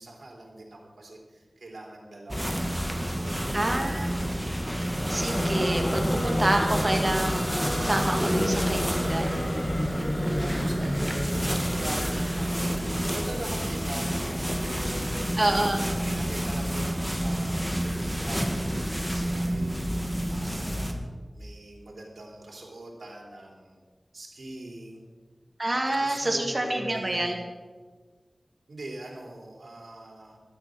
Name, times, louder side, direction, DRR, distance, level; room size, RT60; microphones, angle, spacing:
voice 1, 0.0-2.7 3.0-3.8 10.4-15.3 15.8-17.9 18.2-19.8 20.0-21.0 21.3-23.8 24.1-25.1 25.7-27.4 28.7-30.4, right 2 dB, 80° right, -1 dB, 3.5 m, -42 dB
sound 1, 2.3-20.9, equal, ahead, 1.9 m, -29 dB
voice 2, 3.5-4.2 5.1-7.5 7.8-9.7 10.2-10.7 15.4-15.8 25.6-27.4, right 1 dB, 35° right, 3 dB, 2.4 m, -28 dB
sound 2, 4.8-12.1, left 1 dB, 35° left, 4.4 m, -31 dB
12.5 x 11.5 x 6.4 m, 1.4 s
wide cardioid pair, 45°, 0 cm